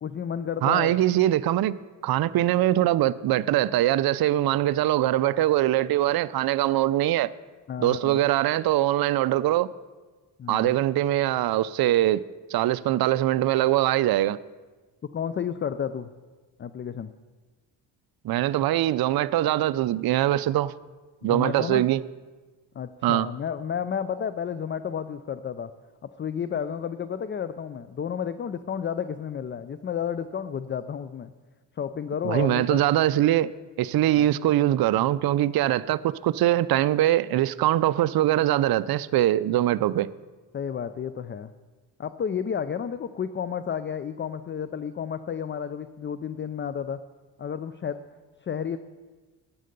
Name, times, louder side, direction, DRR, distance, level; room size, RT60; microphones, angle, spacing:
voice 1, 0.0-1.0 7.7-8.2 10.4-10.7 15.1-16.1 16.6-17.1 21.2-21.8 22.8-25.7 26.0-31.3 31.8-32.8 34.2-34.3 40.5-41.5 42.0-47.0 47.4-48.0 48.4-48.8, left 7 dB, 25° left, 0.4 m, -31 dB
voice 2, 0.6-7.3 7.8-9.7 10.5-12.2 12.5-14.4 18.2-20.7 21.2-22.0 23.0-23.3 32.2-33.5 33.8-40.1, right 14 dB, 50° right, 0.5 m, -22 dB
12.5 x 7.8 x 5.3 m
cardioid pair, 75°, 47 cm